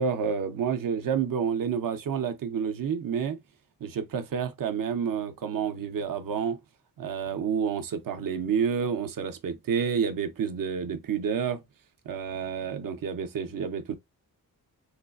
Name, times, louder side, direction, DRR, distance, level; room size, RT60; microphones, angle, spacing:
voice 1, 0.0-3.4 3.8-6.6 7.0-11.6 12.1-13.9, right 7 dB, 60° right, 0.6 m, -29 dB
3.2 x 3.1 x 2.3 m
wide cardioid pair, 150°, 38 cm